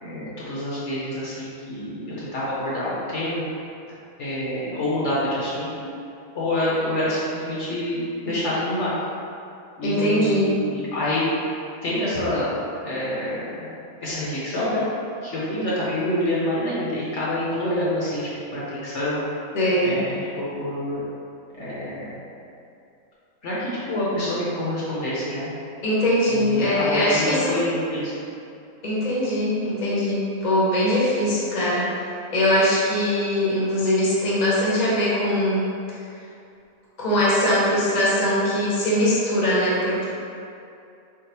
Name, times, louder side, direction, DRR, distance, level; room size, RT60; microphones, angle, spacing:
voice 1, 0.0-3.4 4.2-5.9 6.3-8.9 9.8-11.2 11.8-12.5 12.8-13.7 14.0-14.8 15.2-19.2 19.8-21.0 21.5-22.1 23.4-25.5 26.3-28.1, left 1 dB, 60° left, -8 dB, 1.0 m, -27 dB
voice 2, 9.8-10.5 19.5-20.0 25.8-27.5 28.8-35.7 37.0-40.0, left 1 dB, 35° left, -8 dB, 0.8 m, -21 dB
3.7 x 2.0 x 4.1 m, 2.6 s
omnidirectional pair, 1.5 m